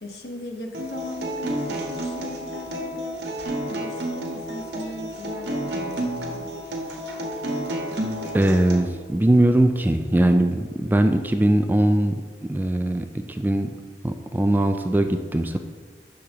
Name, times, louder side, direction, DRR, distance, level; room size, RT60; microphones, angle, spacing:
voice 1, 0.0-3.2 3.7-6.5, left 1 dB, 70° left, 2 dB, 1.1 m, -38 dB
Acoustic guitar, 0.7-8.8, right 1 dB, 80° right, 1.3 m, -30 dB
voice 2, 8.3-12.2 12.5-13.7 14.0-15.6, right 1 dB, 10° right, 6 dB, 0.3 m, -20 dB
10.0 x 6.4 x 2.9 m, 1.5 s
head